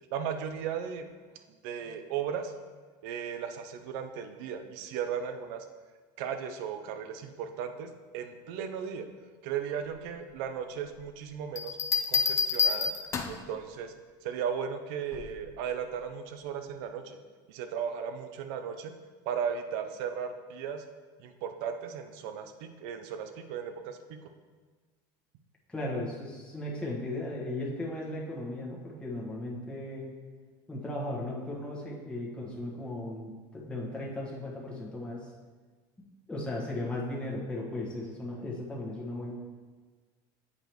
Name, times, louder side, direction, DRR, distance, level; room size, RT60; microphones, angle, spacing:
voice 1, 0.1-1.1 1.6-2.5 3.0-5.6 6.2-9.1 9.4-11.8 12.1-12.9 13.3-13.9 14.2-17.2 17.5-18.9 19.3-20.8 21.2-24.3, right 7 dB, 70° right, 8 dB, 0.6 m, -36 dB
Bell, 11.6-13.5 15.1-15.5, left 5 dB, 25° left, 0.5 m, -28 dB
voice 2, 25.7-30.1 30.7-35.3 36.3-39.3, left 1 dB, 10° left, -5 dB, 1.3 m, -36 dB
8.4 x 5.0 x 3.0 m, 1.4 s
supercardioid pair, 135°, 11 cm